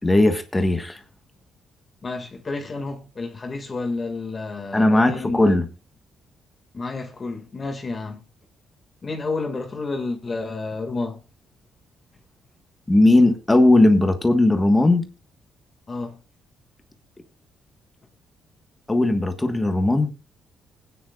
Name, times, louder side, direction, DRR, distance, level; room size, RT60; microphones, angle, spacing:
voice 1, 0.0-1.0 4.7-5.7 12.9-15.0 18.9-20.1, left 2 dB, 15° left, 1.4 m, -18 dB
voice 2, 2.0-5.6 6.7-8.2 9.0-11.2 15.9-16.2, left 3 dB, 35° left, 2.0 m, -30 dB
20.5 x 9.5 x 2.4 m
cardioid pair, 90°, 0 cm